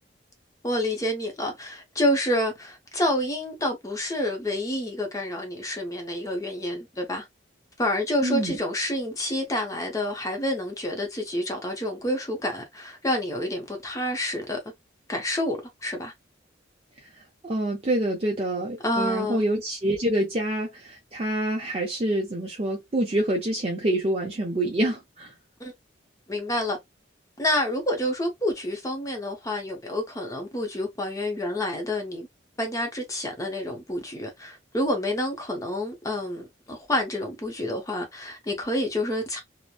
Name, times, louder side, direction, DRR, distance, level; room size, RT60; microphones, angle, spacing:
voice 1, 0.6-7.3 7.8-14.6 15.1-16.1 18.8-19.4 25.6-25.7 26.3-26.8 27.4-32.3 32.6-39.4, left 1 dB, 15° left, 0.6 m, -28 dB
voice 2, 8.2-8.6 17.0-17.1 17.4-25.3, right 1 dB, 30° right, 0.5 m, -26 dB
2.9 x 2.0 x 2.3 m
head